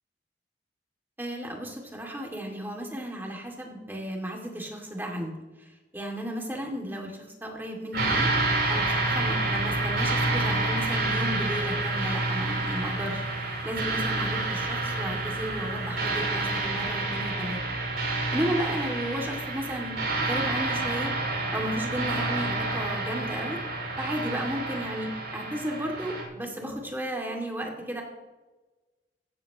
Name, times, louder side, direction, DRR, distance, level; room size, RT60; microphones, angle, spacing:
voice 1, 1.2-5.3 5.9-7.1 7.4-8.3 8.7-13.2 13.6-17.6 18.3-21.1 21.5-23.6 24.0-28.0, equal, 10° right, 0 dB, 2.5 m, -34 dB
sound 1, 7.9-26.2, right 2 dB, 75° right, 5.5 m, -28 dB
16.0 x 14.5 x 3.1 m, 1.2 s
head